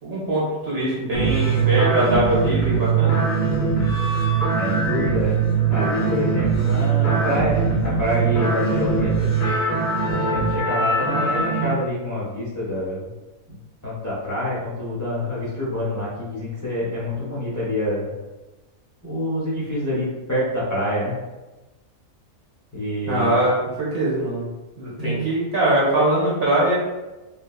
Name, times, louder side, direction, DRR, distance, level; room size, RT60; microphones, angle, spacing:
voice 1, 0.0-3.2 23.1-24.5 24.8-26.7, right 1 dB, 45° right, -7 dB, 1.2 m, -22 dB
sound 1, 1.1-11.7, right 5 dB, 50° left, 1.1 m, -21 dB
voice 2, 4.6-5.3 5.7-9.3 10.1-13.1 13.5-13.6 13.8-18.1 19.0-21.1 22.7-23.5 25.0-25.2, left 1 dB, 25° left, -9 dB, 0.4 m, -26 dB
3.2 x 2.2 x 2.3 m, 1.1 s
omnidirectional pair, 1.5 m